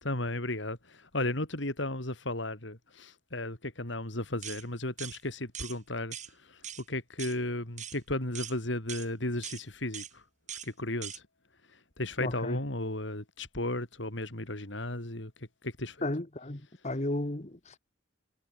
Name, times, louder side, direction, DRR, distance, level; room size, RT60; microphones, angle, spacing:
voice 1, 0.0-10.2 10.6-11.2 11.7-16.0, left 1 dB, 65° left, 4.1 m, -35 dB
sound 1, 4.4-4.6 5.0-5.2 5.5-5.8 6.1-6.3 6.6-6.8 7.2-7.4 7.8-8.0 8.4-8.6 8.9-9.1 9.4-9.6 9.9-10.1 10.5-10.7 11.0-11.2, right 10 dB, 40° right, 3.6 m, -41 dB
voice 2, 12.2-12.6 16.0-17.8, left 1 dB, 35° left, 1.6 m, -34 dB
head